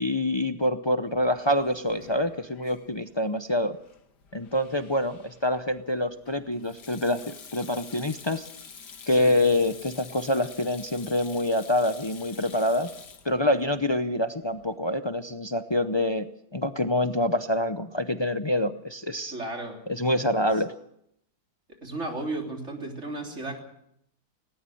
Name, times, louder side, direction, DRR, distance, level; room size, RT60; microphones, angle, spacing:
voice 1, 0.0-3.8 4.3-8.5 9.1-12.9 13.2-16.3 16.5-19.3 19.9-20.7, left 1 dB, 40° left, 9 dB, 0.3 m, -26 dB
Sink (filling or washing), 1.1-14.8, left 6 dB, 85° left, 2.1 m, -49 dB
voice 2, 19.3-19.8 21.8-23.6, right 2 dB, 45° right, 2 dB, 3.8 m, -34 dB
18.5 x 18.5 x 7.7 m, 0.74 s
omnidirectional pair, 1.8 m